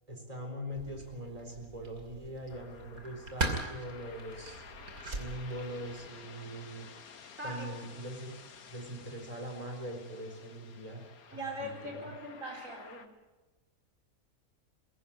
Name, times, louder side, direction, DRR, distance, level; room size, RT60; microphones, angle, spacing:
voice 1, 0.1-4.6 5.0-6.9 7.4-8.3 8.7-11.0 11.3-12.1, equal, 25° right, 3 dB, 4.1 m, -42 dB
sound 1, 0.7-6.1, right 2 dB, 85° right, 3.3 m, -40 dB
sound 2, 2.5-13.1, left 6 dB, 90° left, 1.7 m, -53 dB
voice 2, 11.3-13.1, right 1 dB, 65° right, 2 dB, 4.5 m, -40 dB
22.0 x 17.5 x 8.7 m, 1.1 s
omnidirectional pair, 1.5 m